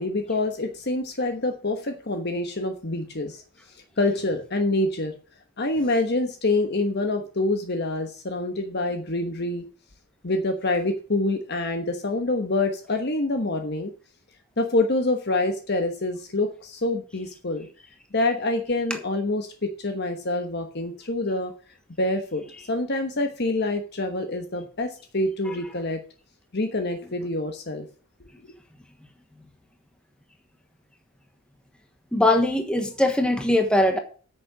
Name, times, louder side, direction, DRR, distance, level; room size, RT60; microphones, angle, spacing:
voice 1, 0.0-3.4 3.7-5.1 5.6-9.6 10.2-13.9 14.6-17.7 18.1-21.5 22.0-26.0 26.5-27.9 28.2-28.3, left 2 dB, 50° left, 1.2 m, -26 dB
voice 2, 32.1-34.0, left 1 dB, 5° left, 1.2 m, -21 dB
9.4 x 6.7 x 6.3 m
head